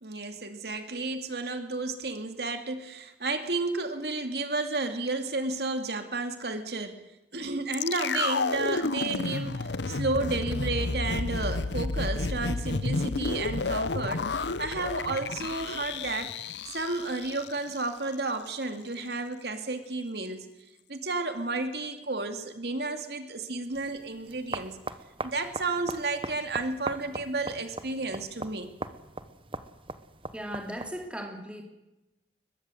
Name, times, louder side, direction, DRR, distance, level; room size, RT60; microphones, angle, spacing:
voice 1, 0.0-7.0 7.3-20.5 20.9-24.8 25.2-28.7, right 3 dB, 70° right, 7 dB, 2.4 m, -32 dB
sound 1, 7.7-17.9 18.1-18.2, left 3 dB, 85° left, 0.8 m, -31 dB
sound 2, 23.7-31.1, right 2 dB, 30° right, 1.2 m, -40 dB
voice 2, 30.3-31.6, equal, 5° right, 2 dB, 3.2 m, -37 dB
22.0 x 21.5 x 7.8 m, 0.96 s
head